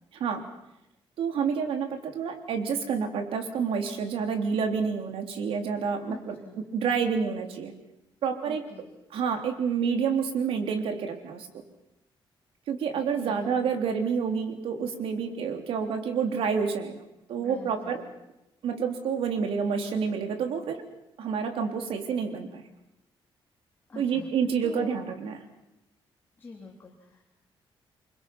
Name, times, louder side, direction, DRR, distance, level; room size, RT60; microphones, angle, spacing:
voice 1, 1.2-6.3 6.7-7.7 8.2-8.6 9.1-11.5 12.7-17.0 17.3-18.0 18.6-20.8 21.2-22.6 24.0-25.4, right 6 dB, 90° right, 5 dB, 3.5 m, -28 dB
voice 2, 6.1-6.6 8.4-8.9 13.2-13.4 17.4-18.2 23.9-24.3 24.6-25.0 26.4-27.3, left 3 dB, 25° left, 0 dB, 3.0 m, -45 dB
28.0 x 24.5 x 6.1 m, 0.89 s
wide cardioid pair, 180°, 9 cm